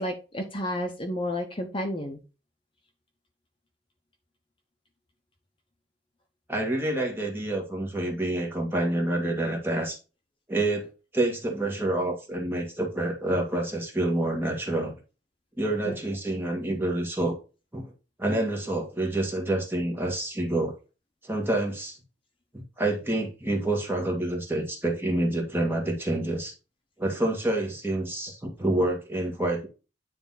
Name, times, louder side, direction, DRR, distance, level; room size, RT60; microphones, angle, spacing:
voice 1, 0.0-2.2 15.9-16.0, left 1 dB, 30° left, 3 dB, 0.9 m, -31 dB
voice 2, 6.5-10.0 10.5-10.9 11.1-14.9 15.6-17.4 17.7-17.9 18.2-20.7 21.2-22.0 22.5-26.5 27.0-29.7, right 1 dB, 15° right, 0 dB, 1.8 m, -27 dB
9.7 x 3.4 x 4.1 m, 0.32 s
head